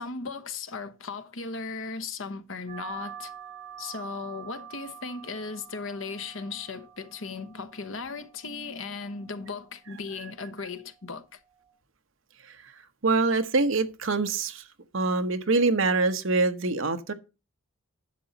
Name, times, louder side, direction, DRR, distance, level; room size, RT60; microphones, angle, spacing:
voice 1, 0.0-3.3 3.8-11.4, left 4 dB, 60° left, 1.0 m, -37 dB
sound 1, 2.7-11.7, right 8 dB, 35° right, 5.5 m, -47 dB
voice 2, 13.0-14.6 14.9-17.1, right 3 dB, 65° right, 1.0 m, -25 dB
10.5 x 6.9 x 4.0 m
head